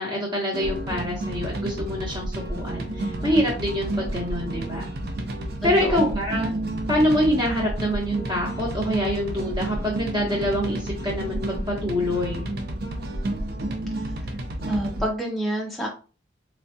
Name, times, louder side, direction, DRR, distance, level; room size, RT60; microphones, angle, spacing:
voice 1, 0.0-4.9 5.6-6.5 6.9-12.4, equal, 25° right, -4 dB, 1.0 m, -25 dB
sound 1, 0.5-15.1, right 1 dB, 55° right, 0.5 m, -30 dB
voice 2, 5.6-6.2 14.7-15.9, equal, ahead, -2 dB, 0.4 m, -28 dB
3.2 x 2.3 x 2.6 m, 0.36 s
head